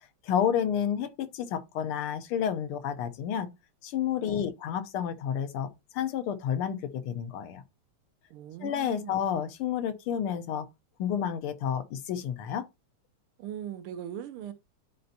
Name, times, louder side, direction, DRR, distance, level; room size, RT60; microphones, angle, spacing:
voice 1, 0.2-3.5 3.8-7.6 8.6-10.7 11.0-12.6, left 9 dB, 85° left, 1.7 m, -30 dB
voice 2, 8.3-9.2 13.4-14.5, right 10 dB, 85° right, 1.6 m, -40 dB
11.0 x 4.3 x 2.7 m
omnidirectional pair, 2.4 m